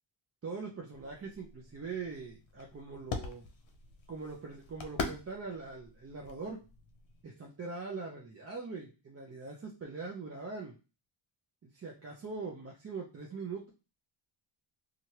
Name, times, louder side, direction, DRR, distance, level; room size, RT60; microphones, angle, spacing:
voice 1, 0.4-3.4 4.1-6.6 7.2-10.7 11.6-13.7, right 4 dB, 30° right, -1 dB, 0.7 m, -42 dB
sound 1, 0.9-7.2, left 4 dB, 70° left, 0.8 m, -43 dB
3.1 x 2.5 x 2.8 m, 0.30 s
cardioid pair, 90°, 48 cm